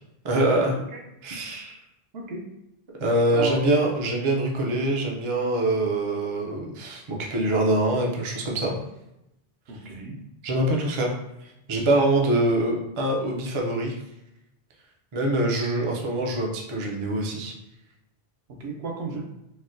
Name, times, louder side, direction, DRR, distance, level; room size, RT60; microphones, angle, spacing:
voice 1, 0.2-0.8 1.2-1.8 3.0-8.7 10.4-11.1 11.7-14.0 15.1-17.5, right 1 dB, 40° right, -1 dB, 0.4 m, -24 dB
voice 2, 3.3-3.9 9.7-10.2 18.6-19.3, right 4 dB, 75° right, 1 dB, 0.9 m, -33 dB
4.1 x 2.1 x 2.5 m, 0.87 s
omnidirectional pair, 1.1 m